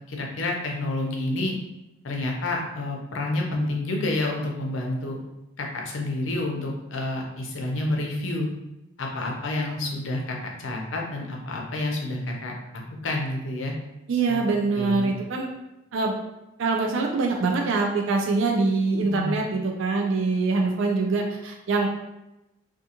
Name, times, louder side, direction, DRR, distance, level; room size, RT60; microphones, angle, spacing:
voice 1, 0.1-1.6 2.0-5.2 5.6-8.5 9.0-12.6 13.0-13.7 14.3-14.4 14.7-15.1 19.0-19.4, left 2 dB, 70° left, 0 dB, 0.5 m, -29 dB
voice 2, 14.1-15.5 15.9-16.1 16.6-21.9, right 3 dB, 70° right, 1 dB, 0.4 m, -24 dB
2.4 x 2.3 x 2.8 m, 0.93 s
head